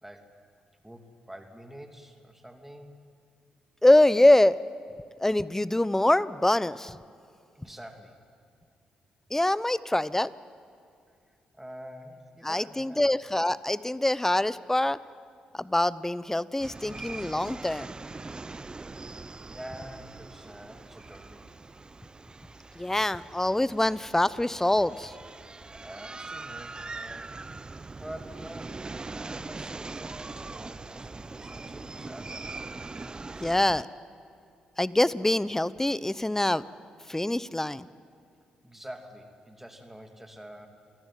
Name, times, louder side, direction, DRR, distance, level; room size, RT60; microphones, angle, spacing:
voice 1, 0.0-0.3 0.8-3.0 7.5-8.2 11.5-13.1 19.5-21.5 25.8-32.6 38.6-40.7, equal, 10° right, 5 dB, 2.9 m, -46 dB
voice 2, 3.8-4.6 5.2-7.0 9.3-10.3 12.4-15.0 15.5-17.9 22.8-25.1 33.4-33.9 34.8-36.6 37.1-37.9, left 1 dB, 10° left, 18 dB, 0.8 m, -24 dB
sound 1, 16.6-33.8, right 3 dB, 25° right, 0.7 m, -42 dB
28.0 x 18.0 x 9.2 m, 2.4 s
hypercardioid pair, 40°, 3 cm